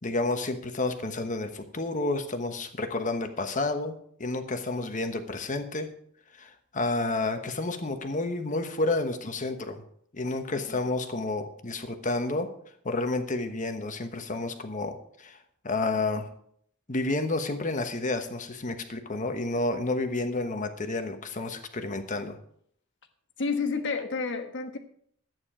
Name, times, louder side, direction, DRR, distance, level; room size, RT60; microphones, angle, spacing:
voice 1, 0.0-5.9 6.3-9.8 10.1-12.5 12.8-16.3 16.9-22.4, left 2 dB, 35° left, 7 dB, 1.2 m, -30 dB
voice 2, 23.4-24.8, left 4 dB, 60° left, 6 dB, 1.3 m, -30 dB
12.0 x 9.4 x 5.0 m, 0.66 s
head